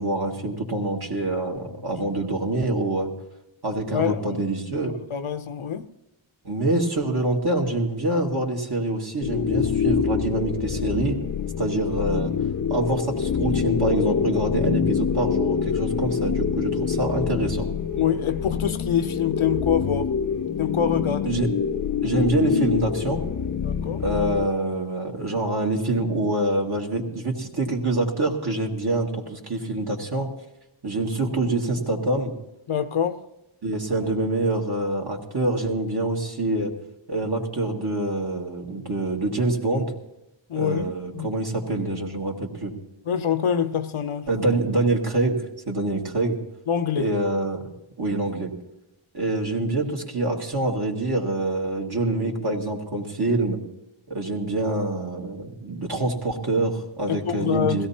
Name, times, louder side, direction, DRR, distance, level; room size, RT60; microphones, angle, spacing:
voice 1, 0.0-3.1 3.6-4.9 6.4-11.2 11.6-12.3 12.7-17.7 21.2-21.5 22.0-23.2 24.0-30.3 30.8-32.3 33.6-36.7 37.1-39.9 40.5-42.7 44.3-45.4 45.7-46.4 47.0-47.7 48.0-48.5 49.1-53.6 54.1-57.9, right 2 dB, 50° right, 2.0 m, -25 dB
voice 2, 3.9-4.4 5.1-5.9 18.0-20.1 20.6-21.4 23.6-24.1 32.7-33.2 40.5-41.4 43.1-44.3 46.7-47.1 57.1-57.8, left 8 dB, 75° left, 0.7 m, -25 dB
sound 1, 9.2-24.5, left 7 dB, 40° left, 0.5 m, -26 dB
21.5 x 16.5 x 2.8 m
wide cardioid pair, 70°, 49 cm